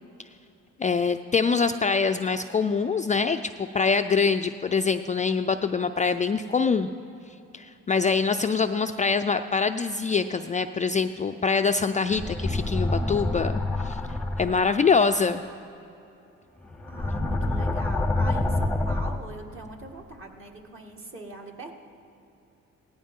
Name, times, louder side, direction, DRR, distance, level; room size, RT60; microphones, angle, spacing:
voice 1, 0.8-6.9 7.5-14.0 14.4-15.4, left 5 dB, 25° left, 7 dB, 0.3 m, -24 dB
sound 1, 12.1-14.6 16.6-19.2, left 2 dB, 5° left, 0.8 m, -27 dB
voice 2, 16.9-21.7, right 2 dB, 45° right, 1 dB, 1.9 m, -42 dB
17.5 x 14.5 x 3.7 m, 2.8 s
cardioid pair, 90°, 30 cm